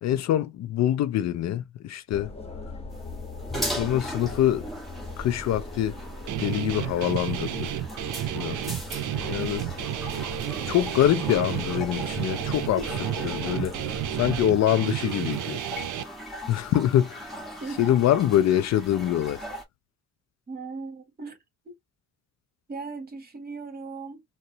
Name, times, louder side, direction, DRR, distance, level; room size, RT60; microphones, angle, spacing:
voice 1, 0.0-2.3 3.7-4.6 5.2-6.0 6.4-7.7 8.4-8.6 9.3-9.6 10.6-12.8 13.2-13.7 14.1-15.6 16.5-17.3 17.8-19.4, left 11 dB, 60° left, 0.4 m, -24 dB
sound 1, 2.1-14.7, left 2 dB, 20° left, 1.1 m, -39 dB
sound 2, 2.9-19.6, equal, ahead, 1.4 m, -39 dB
Guitar, 6.3-16.0, right 13 dB, 75° right, 0.5 m, -31 dB
voice 2, 17.6-18.0 20.5-21.4 21.6-21.8 22.7-24.2, right 3 dB, 30° right, 1.5 m, -38 dB
3.7 x 2.1 x 2.7 m
cardioid pair, 90°, 30 cm